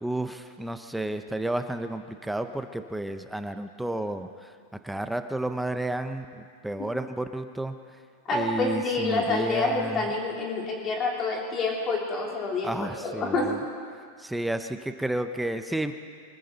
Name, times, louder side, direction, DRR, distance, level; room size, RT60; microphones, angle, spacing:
voice 1, 0.0-4.5 4.8-7.7 8.3-10.1 12.6-13.6 14.2-15.9, right 1 dB, 5° right, 8 dB, 0.6 m, -31 dB
voice 2, 8.3-13.5, left 3 dB, 25° left, -2 dB, 3.3 m, -28 dB
24.5 x 15.0 x 4.0 m, 2.2 s
supercardioid pair, 155°, 0 cm